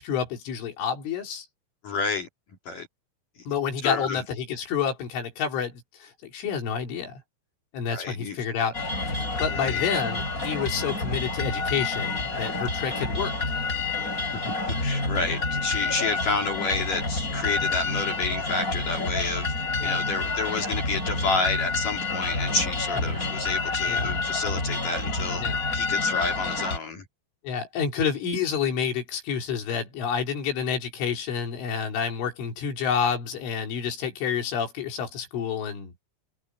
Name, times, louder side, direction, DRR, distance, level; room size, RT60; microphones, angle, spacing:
voice 1, 0.0-1.5 3.5-7.1 7.7-8.8 9.3-13.3 17.4-17.6 19.8-20.0 23.1-23.2 23.9-24.1 25.4-25.6 27.4-35.9, left 7 dB, 80° left, 6.3 m, -29 dB
voice 2, 1.8-2.3 2.7-2.9 3.8-4.2 7.9-8.4 9.5-10.0 14.7-19.5 19.8-25.4 25.7-27.0, left 3 dB, 50° left, 3.6 m, -30 dB
sound 1, 8.7-26.8, left 3 dB, 15° left, 7.2 m, -28 dB
open air
omnidirectional pair, 5.5 m